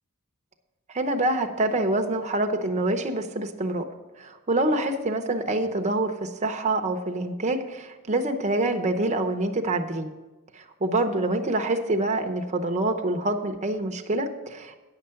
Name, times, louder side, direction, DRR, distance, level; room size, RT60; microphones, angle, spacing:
voice 1, 0.9-3.8 4.2-10.1 10.5-14.8, right 2 dB, 30° right, 5 dB, 0.8 m, -26 dB
9.4 x 5.7 x 7.6 m, 1.1 s
head